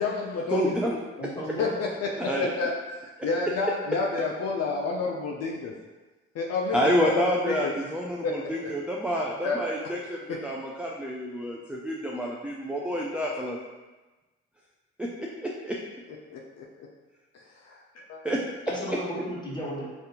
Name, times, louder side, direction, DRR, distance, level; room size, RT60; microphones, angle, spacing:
voice 1, 0.0-0.7 1.6-2.1 2.4-2.7 3.0-5.7 6.3-7.1 7.5-7.7 8.2-8.4 8.6-8.7 9.4-9.9 10.3-10.4 16.3-16.9 17.3-17.8 18.1-18.2, left 4 dB, 55° left, -1 dB, 0.5 m, -30 dB
voice 2, 0.5-1.0 2.2-2.5 6.7-13.6 15.0-15.8 18.2-19.0, equal, 5° right, -2 dB, 0.4 m, -28 dB
voice 3, 1.2-1.7 18.7-19.8, equal, 15° left, -6 dB, 1.4 m, -34 dB
2.7 x 2.5 x 3.5 m, 1.2 s
hypercardioid pair, 50°, 31 cm